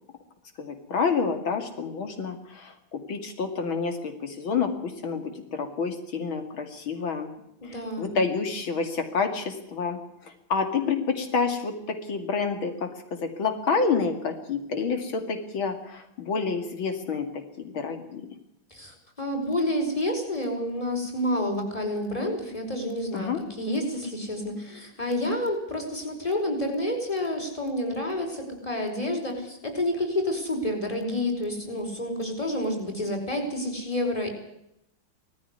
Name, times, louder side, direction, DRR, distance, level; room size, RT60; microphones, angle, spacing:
voice 1, 0.6-7.3 7.6-18.3 23.1-23.4, left 5 dB, 90° left, 6 dB, 3.1 m, -29 dB
voice 2, 7.6-8.2 18.7-34.3, left 1 dB, 15° left, 2 dB, 5.0 m, -29 dB
19.0 x 15.0 x 9.6 m, 0.80 s
omnidirectional pair, 2.1 m